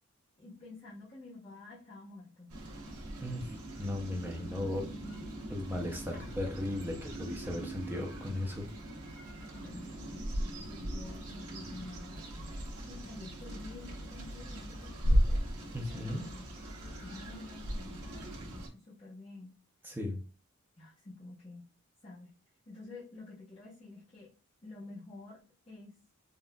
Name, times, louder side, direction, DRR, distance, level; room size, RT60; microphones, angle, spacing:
voice 1, 0.4-2.5 6.1-6.3 9.5-12.3 12.9-19.5 19.9-20.0 20.8-21.7 22.0-22.3 22.7-24.3 24.6-25.4 25.7-25.9, left 2 dB, 30° left, -9 dB, 0.9 m, -49 dB
sound 1, 2.5-18.7, equal, 90° right, 0.9 m, -37 dB
voice 2, 3.2-4.9 5.5-8.7 15.7-16.2 19.8-20.2, left 1 dB, 10° right, 1 dB, 0.6 m, -36 dB
3.7 x 2.4 x 2.2 m, 0.35 s
head